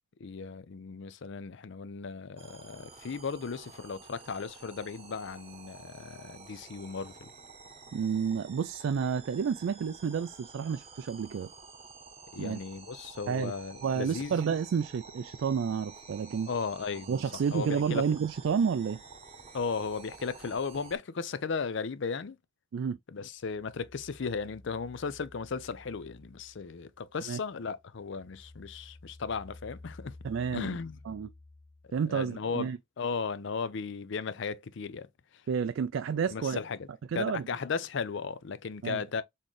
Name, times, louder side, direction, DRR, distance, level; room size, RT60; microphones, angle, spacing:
voice 1, 0.2-7.3 12.3-14.4 16.5-17.1 17.5-18.0 19.5-22.4 23.1-30.2 30.5-31.0 32.1-32.7 33.0-35.1 36.3-36.9 37.1-39.2, left 5 dB, 60° left, 0.5 m, -36 dB
sound 1, 2.4-21.0, right 4 dB, 30° right, 0.8 m, -50 dB
voice 2, 7.9-11.5 12.4-12.6 13.3-13.5 13.8-16.5 17.1-19.0 22.7-23.0 27.3-27.4 30.2-30.8 31.1-31.3 31.9-32.8 35.5-36.6 37.1-37.5 38.8-39.0, right 6 dB, 65° right, 0.3 m, -30 dB
sound 2, 23.4-27.3 27.7-32.2, left 2 dB, 5° left, 0.8 m, -53 dB
4.2 x 3.7 x 3.1 m
head